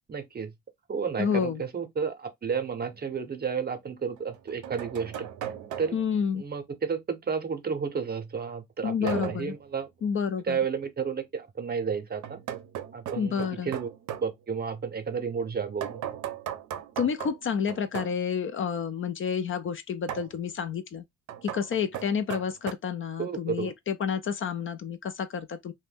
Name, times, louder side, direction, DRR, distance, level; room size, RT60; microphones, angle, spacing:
voice 1, 0.1-0.5 0.9-5.3 5.8-6.0 6.3-9.9 10.4-12.4 12.9-13.9 14.2-16.0 23.2-23.7, right 6 dB, 30° right, 0.7 m, -32 dB
voice 2, 1.2-1.6 5.9-6.4 8.8-9.5 10.0-10.6 13.2-13.7 17.0-21.0 21.4-25.7, left 7 dB, 45° left, 0.4 m, -29 dB
sound 1, 2.9-3.0 4.2-6.2 9.1-9.5 12.2-14.3 15.8-18.2 20.1-20.4 21.3-22.7, right 10 dB, 80° right, 0.5 m, -37 dB
2.5 x 2.2 x 3.4 m
cardioid pair, 90°, 30 cm